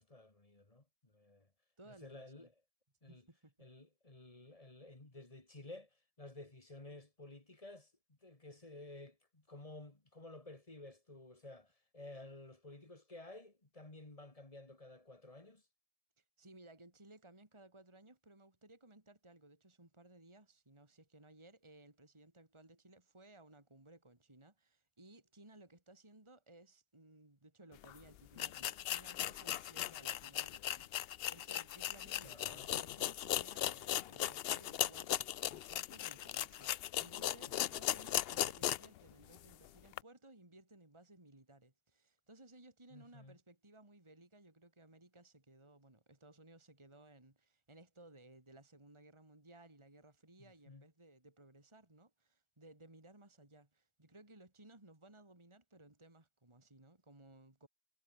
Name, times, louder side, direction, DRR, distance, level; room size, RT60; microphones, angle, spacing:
voice 1, 0.0-1.5 1.9-2.5 3.0-3.3 3.6-15.6 32.2-32.7 37.5-37.7 42.9-43.4 50.4-50.8, left 2 dB, 25° left, 2.3 m, -54 dB
voice 2, 1.8-2.5 3.1-3.7 16.2-57.7, right 2 dB, 20° right, 2.9 m, -60 dB
sound 1, 27.8-27.9 28.4-39.0 39.3-39.4 39.9-40.0, left 12 dB, 80° left, 0.5 m, -38 dB
omnidirectional pair, 1.6 m